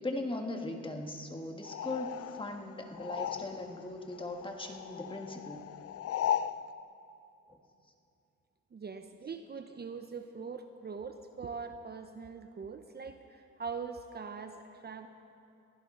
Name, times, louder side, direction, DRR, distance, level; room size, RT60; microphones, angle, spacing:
voice 1, 0.0-5.6 7.5-7.6, left 2 dB, 15° left, 3 dB, 1.7 m, -39 dB
sound 1, 1.6-6.6, left 10 dB, 50° left, 0.5 m, -37 dB
voice 2, 8.7-15.1, right 5 dB, 35° right, 7 dB, 0.8 m, -42 dB
22.5 x 15.5 x 3.9 m, 2.7 s
cardioid pair, 90°, 30 cm